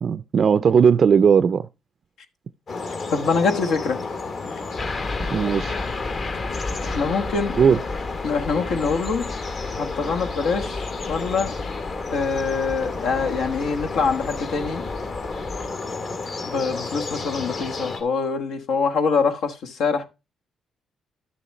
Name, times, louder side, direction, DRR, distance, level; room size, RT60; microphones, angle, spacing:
voice 1, 0.0-1.7 5.3-5.8 7.6-7.8, right 6 dB, 50° right, 0.4 m, -17 dB
sound 1, 2.7-18.0, left 3 dB, 55° left, 1.9 m, -32 dB
voice 2, 3.1-4.0 6.8-7.6 8.2-9.3 9.7-11.5 12.1-14.9 16.4-20.0, left 5 dB, 80° left, 1.2 m, -24 dB
sound 2, 4.8-15.7, left 3 dB, 40° left, 0.9 m, -33 dB
11.0 x 6.9 x 3.0 m
cardioid pair, 90°, 0 cm